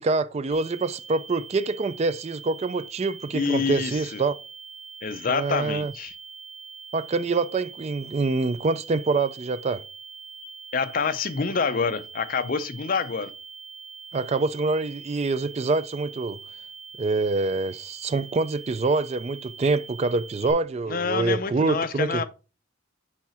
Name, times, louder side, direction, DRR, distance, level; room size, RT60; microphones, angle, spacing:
voice 1, 0.0-4.4 5.3-5.9 6.9-9.8 14.1-16.4 17.0-22.2, right 3 dB, 30° right, 0.3 m, -25 dB
sound 1, 0.5-20.5, right 5 dB, 30° left, 1.7 m, -43 dB
voice 2, 3.3-4.2 5.0-6.1 10.7-13.3 20.9-22.2, left 5 dB, 45° left, 0.6 m, -27 dB
6.0 x 4.9 x 4.3 m
head